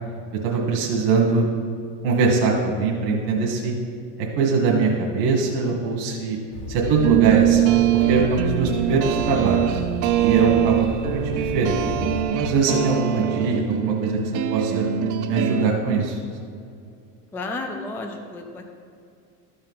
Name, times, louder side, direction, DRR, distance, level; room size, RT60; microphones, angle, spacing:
voice 1, 0.4-1.5 2.0-3.7 4.2-6.4 6.7-9.8 10.2-11.8 12.3-14.2 14.5-14.9 15.3-16.2, right 4 dB, 75° right, -1 dB, 1.6 m, -22 dB
sound 1, 6.5-12.2, left 2 dB, 75° left, 2.0 m, -34 dB
sound 2, 6.8-15.6, right 12 dB, 40° right, 0.5 m, -23 dB
voice 2, 17.3-18.6, left 2 dB, 5° left, 4 dB, 0.3 m, -33 dB
13.0 x 4.4 x 5.5 m, 2.4 s
supercardioid pair, 130°, 48 cm